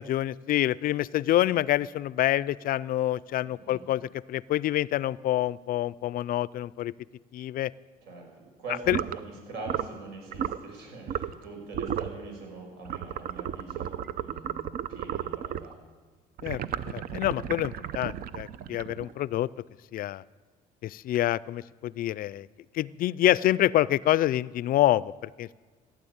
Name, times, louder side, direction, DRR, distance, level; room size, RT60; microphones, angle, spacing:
voice 1, 0.0-6.9 7.3-7.7 8.9-9.0 16.4-19.5 19.9-20.2 20.8-22.5 22.7-25.5, left 13 dB, 60° left, 21 dB, 0.4 m, -27 dB
voice 2, 3.4-3.8 8.0-15.8, right 3 dB, 80° right, 0 dB, 6.1 m, -43 dB
sound 1, 8.8-9.2 9.6-10.0 10.3-10.6 11.1-11.4 11.7-12.2 12.9-15.7 16.4-19.2, right 10 dB, 60° right, 0.7 m, -33 dB
16.0 x 9.6 x 8.6 m, 1.4 s
cardioid pair, 110°, 17 cm